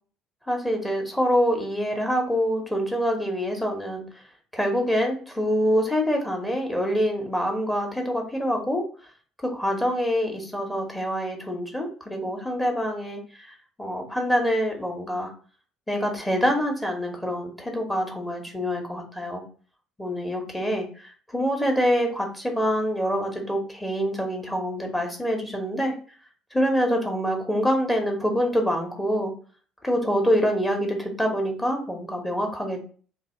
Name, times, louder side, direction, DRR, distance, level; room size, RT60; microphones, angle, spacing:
voice 1, 0.5-4.0 4.5-8.9 9.4-15.3 15.9-19.4 20.0-25.9 26.5-29.3 29.8-32.8, equal, 10° left, 2 dB, 1.1 m, -25 dB
3.3 x 2.7 x 4.3 m, 0.41 s
figure-of-eight pair, 55°, 0 cm